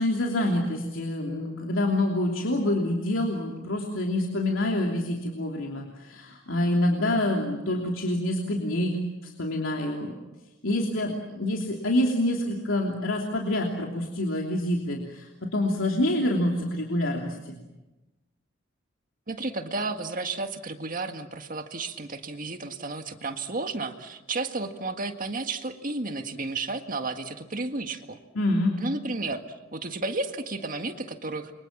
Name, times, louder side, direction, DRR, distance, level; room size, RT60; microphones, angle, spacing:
voice 1, 0.0-9.0 9.2-10.2 10.6-17.6 28.3-28.7, left 1 dB, 85° left, 0 dB, 3.1 m, -27 dB
voice 2, 19.3-28.2 28.8-29.4 29.7-31.5, right 3 dB, 45° right, 6 dB, 1.9 m, -32 dB
29.0 x 24.5 x 7.4 m, 1.1 s
head